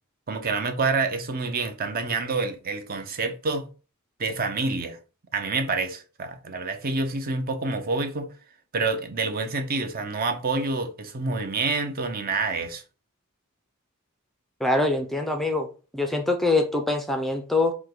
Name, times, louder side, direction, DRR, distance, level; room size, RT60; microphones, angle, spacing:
voice 1, 0.3-3.7 4.2-5.0 5.3-8.3 8.7-12.8, right 3 dB, 45° right, 0.7 m, -27 dB
voice 2, 14.6-15.7 15.9-17.7, left 2 dB, ahead, 0.5 m, -24 dB
4.8 x 2.2 x 3.8 m
head